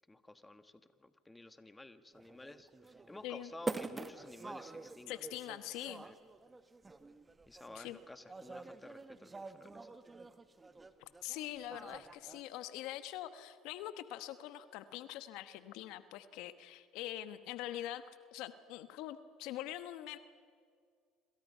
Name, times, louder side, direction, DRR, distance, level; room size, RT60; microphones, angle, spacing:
voice 1, 0.1-5.1 6.0-6.2 7.5-9.9, left 2 dB, 15° left, 10 dB, 1.6 m, -53 dB
sound 1, 2.1-12.4, right 3 dB, 20° right, 1.6 m, -47 dB
voice 2, 5.1-6.1 7.7-8.0 11.2-20.2, left 13 dB, 75° left, 12 dB, 1.1 m, -44 dB
26.5 x 26.5 x 5.6 m, 2.1 s
supercardioid pair, 75°, 0 cm